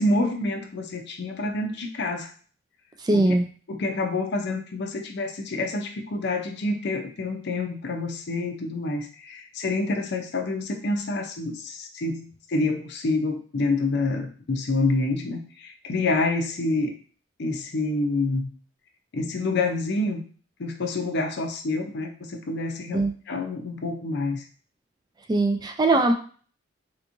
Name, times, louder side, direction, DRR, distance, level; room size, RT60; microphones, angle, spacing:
voice 1, 0.0-2.3 3.1-3.3 3.7-16.9 17.4-18.5 19.1-20.2 20.6-23.0 23.3-24.4, left 2 dB, 60° left, 4 dB, 0.6 m, -27 dB
voice 2, 3.0-3.4 22.9-23.1 25.3-26.1, right 2 dB, 20° right, 5 dB, 0.3 m, -20 dB
3.5 x 2.9 x 2.5 m, 0.42 s
head